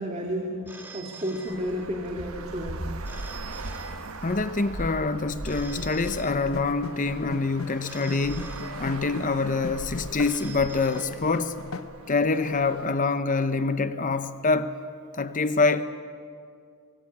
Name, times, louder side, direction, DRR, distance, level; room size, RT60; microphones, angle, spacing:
voice 1, 0.0-2.9, equal, 30° right, 2.2 m, -32 dB
Telephone, 0.7-2.2 3.0-4.5 5.4-6.9 7.8-9.3 10.2-11.7, right 4 dB, 10° right, 2.1 m, -46 dB
Traffic noise roadway noise, 1.5-12.9, right 2 dB, 80° right, 1.2 m, -40 dB
voice 2, 4.2-11.6 12.1-14.8 15.1-15.8, left 3 dB, 35° left, 0.8 m, -26 dB
sound 1, 5.8-13.0, left 4 dB, 70° left, 0.8 m, -39 dB
24.5 x 23.5 x 8.6 m
head